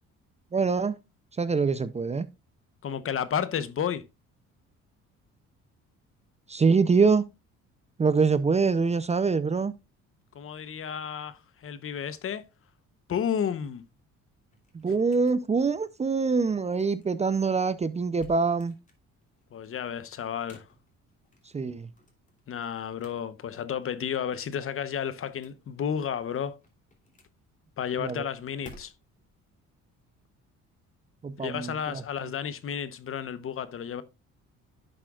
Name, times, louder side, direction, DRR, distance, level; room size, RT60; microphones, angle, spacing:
voice 1, 0.5-1.0 1.3-2.3 6.5-7.2 8.0-9.7 14.7-18.7 21.4-21.9 28.0-28.3 31.2-32.3, right 4 dB, 20° right, 0.6 m, -25 dB
voice 2, 2.8-4.0 10.3-12.4 13.1-13.8 19.5-20.6 22.5-26.6 27.8-28.9 31.4-34.0, left 8 dB, 45° left, 1.0 m, -32 dB
sound 1, 14.0-29.3, left 2 dB, 25° left, 3.0 m, -58 dB
11.0 x 7.6 x 2.4 m
cardioid pair, 105°, 30 cm